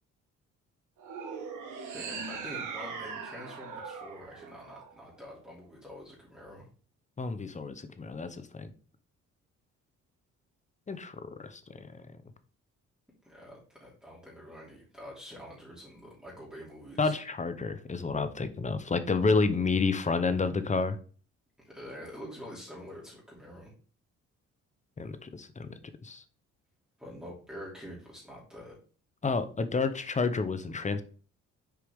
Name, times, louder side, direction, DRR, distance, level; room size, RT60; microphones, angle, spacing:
sound 1, 1.0-5.4, right 5 dB, 80° right, 1.7 m, -40 dB
voice 1, 1.9-6.7 13.2-17.2 21.6-23.7 27.0-28.7, equal, 5° right, -6 dB, 2.7 m, -46 dB
voice 2, 7.2-8.7 10.9-11.6 17.0-21.0 25.0-25.7 26.0-26.2 29.2-31.0, left 4 dB, 25° left, 12 dB, 0.8 m, -30 dB
6.9 x 4.8 x 3.6 m, 0.41 s
cardioid pair, 90°, 30 cm